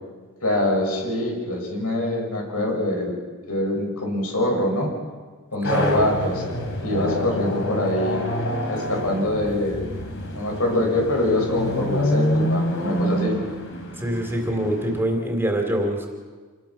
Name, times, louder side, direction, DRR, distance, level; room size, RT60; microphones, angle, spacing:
voice 1, 0.4-3.2 3.5-4.9 5.5-8.2 8.7-9.9 10.3-13.4, left 1 dB, 80° left, 0 dB, 7.3 m, -24 dB
sound 1, 5.6-15.0, left 1 dB, 65° left, 3.8 m, -27 dB
voice 2, 5.6-6.1 14.0-16.1, right 1 dB, 10° right, 2 dB, 3.3 m, -24 dB
27.5 x 20.5 x 6.0 m, 1.4 s
head